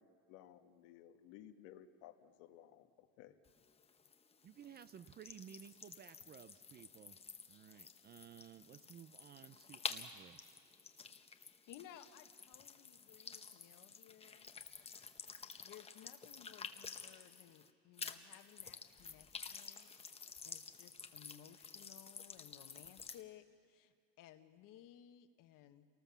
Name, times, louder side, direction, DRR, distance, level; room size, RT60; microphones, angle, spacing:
voice 1, 0.3-3.4, left 11 dB, 85° left, 7 dB, 1.5 m, -58 dB
sound 1, 3.4-17.7 18.0-23.2, left 5 dB, 15° left, 0.8 m, -51 dB
voice 2, 4.4-7.2 7.5-10.6, right 9 dB, 30° right, 14 dB, 0.5 m, -56 dB
voice 3, 11.7-14.5 15.6-19.9 20.2-25.9, left 11 dB, 60° left, 9 dB, 1.4 m, -59 dB
28.5 x 19.0 x 7.1 m, 2.3 s
cardioid pair, 150°, 36 cm